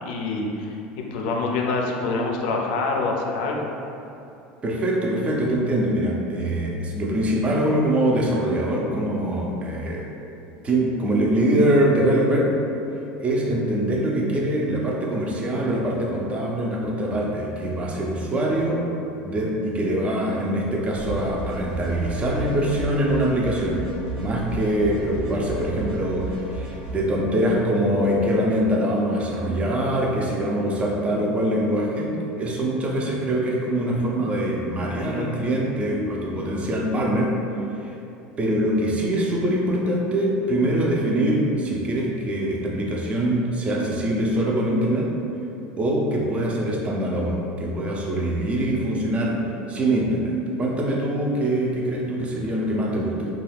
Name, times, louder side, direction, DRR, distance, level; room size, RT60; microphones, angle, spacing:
voice 1, 0.0-3.7, left 3 dB, 80° left, 0 dB, 0.4 m, -26 dB
voice 2, 4.6-10.1 10.6-12.5 13.2-18.9 19.2-23.8 24.2-37.4 37.8-37.9 38.4-45.1 45.8-49.4 49.7-53.3, right 1 dB, 25° right, -2 dB, 0.5 m, -23 dB
sound 1, 20.9-26.9, right 3 dB, 70° right, 1.0 m, -34 dB
2.4 x 2.3 x 3.3 m, 2.8 s
supercardioid pair, 115°, 5 cm